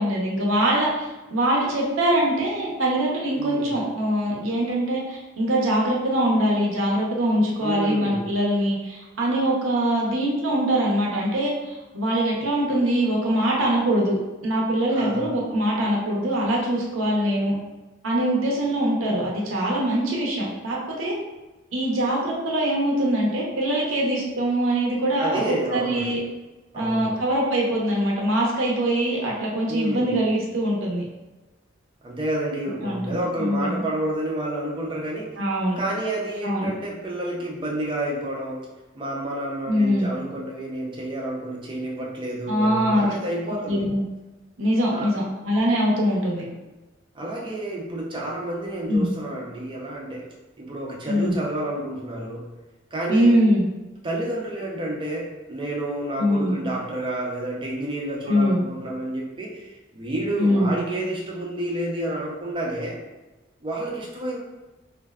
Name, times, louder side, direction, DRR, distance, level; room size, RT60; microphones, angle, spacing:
voice 1, 0.0-14.2 14.4-17.6 18.0-21.1 21.7-26.2 26.7-31.0 32.8-33.9 35.4-35.8 36.4-36.7 39.7-40.1 42.5-43.1 43.7-44.0 44.6-46.4 48.9-49.1 51.1-51.4 53.1-53.7 56.2-56.7 58.3-58.6 60.4-60.7, right 1 dB, 90° right, -3 dB, 0.6 m, -23 dB
voice 2, 3.3-3.8 7.6-8.3 14.9-15.3 25.2-26.2 26.7-27.2 29.7-30.1 32.0-35.4 35.8-38.7 38.9-43.8 44.9-45.1 47.1-50.3 50.6-52.5 52.9-53.3 54.0-63.0 63.6-64.4, right 1 dB, 25° right, -3 dB, 0.4 m, -30 dB
2.5 x 2.2 x 2.3 m, 1.1 s
head